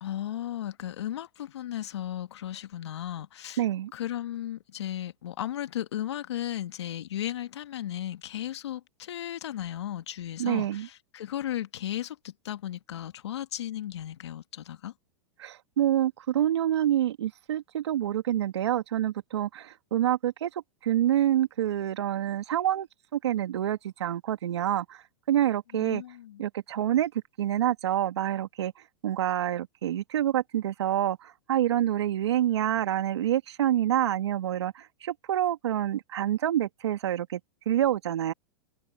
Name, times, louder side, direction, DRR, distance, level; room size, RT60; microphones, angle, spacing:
voice 1, 0.0-3.6 3.9-14.9 25.7-26.4, left 12 dB, 80° left, 2.5 m, -35 dB
voice 2, 3.6-3.9 10.4-10.9 15.4-20.5 20.8-22.9 23.1-25.0 25.3-26.0 26.4-27.1 27.4-28.7 29.0-37.4 37.7-38.3, right 11 dB, 80° right, 2.7 m, -27 dB
hypercardioid pair, 120°, 14 cm